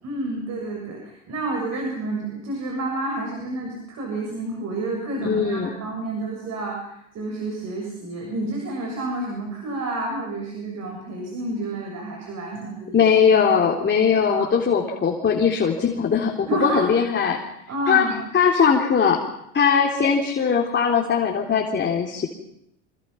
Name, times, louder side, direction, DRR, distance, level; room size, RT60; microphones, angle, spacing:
voice 1, 0.0-13.0 14.3-14.5 16.5-16.9 17.7-18.2, right 2 dB, 50° right, 1 dB, 7.2 m, -29 dB
voice 2, 5.2-5.7 12.9-17.4 17.9-18.1 18.3-19.2 19.5-22.3, left 6 dB, 30° left, 1 dB, 3.7 m, -20 dB
26.0 x 26.0 x 5.9 m, 0.77 s
supercardioid pair, 90°, 35 cm